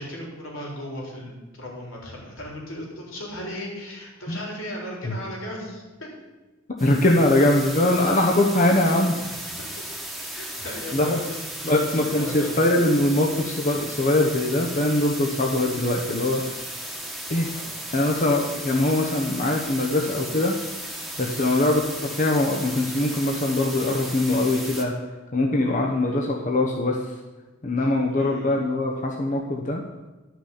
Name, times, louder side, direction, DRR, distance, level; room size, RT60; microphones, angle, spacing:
voice 1, 0.0-5.8 8.8-9.0 9.5-9.7 10.3-12.6 17.5-17.8 21.4-21.6 26.0-26.2 27.8-28.6, left 1 dB, 80° left, -2 dB, 3.7 m, -37 dB
voice 2, 6.8-9.1 10.9-11.2 11.6-16.5 17.3-17.5 17.9-20.6 21.2-21.8 22.2-24.9 25.3-27.1 27.6-29.8, left 1 dB, 40° left, 0 dB, 1.0 m, -22 dB
sound 1, 6.8-24.8, right 1 dB, ahead, 1.4 m, -35 dB
11.5 x 6.1 x 7.1 m, 1.2 s
head